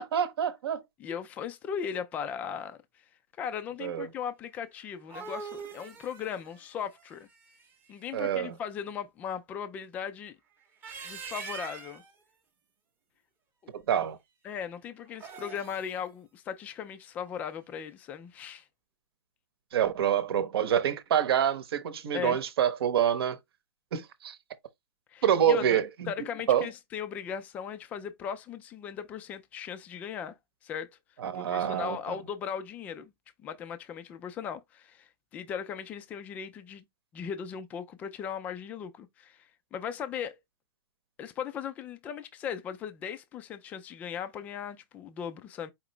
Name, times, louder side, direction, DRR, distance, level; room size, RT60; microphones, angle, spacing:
voice 1, 0.0-0.8 3.8-4.1 8.1-8.5 13.7-14.2 19.7-23.4 23.9-24.4 25.2-26.1 26.5-26.7 31.2-32.1, right 9 dB, 65° right, 0.9 m, -27 dB
voice 2, 1.0-2.8 3.4-7.3 7.9-10.4 11.0-12.0 13.6-13.7 14.4-18.7 22.1-22.4 25.1-30.3 30.6-31.0 31.3-33.1 33.4-36.9 37.1-39.4 39.7-40.4 41.2-45.7, left 8 dB, 10° left, 0.3 m, -38 dB
sound 1, 4.8-7.9 10.6-12.1 15.1-16.0, right 5 dB, 15° right, 0.8 m, -43 dB
5.0 x 2.8 x 3.1 m
hypercardioid pair, 165°, 14 cm